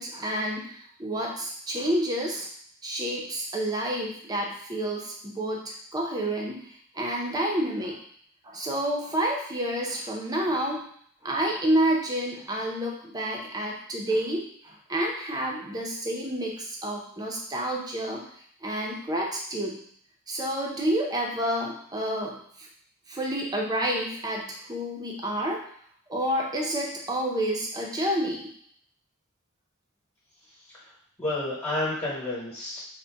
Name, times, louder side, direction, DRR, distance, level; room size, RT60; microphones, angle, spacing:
voice 1, 0.0-2.5 2.8-8.0 8.4-10.8 11.2-18.2 18.6-19.8 20.3-22.7 23.1-25.6 26.1-28.5, right 1 dB, 20° right, -1 dB, 0.6 m, -29 dB
voice 2, 30.4-30.9 31.2-32.8, left 2 dB, 15° left, -9 dB, 1.2 m, -31 dB
4.0 x 2.2 x 3.4 m, 0.63 s
head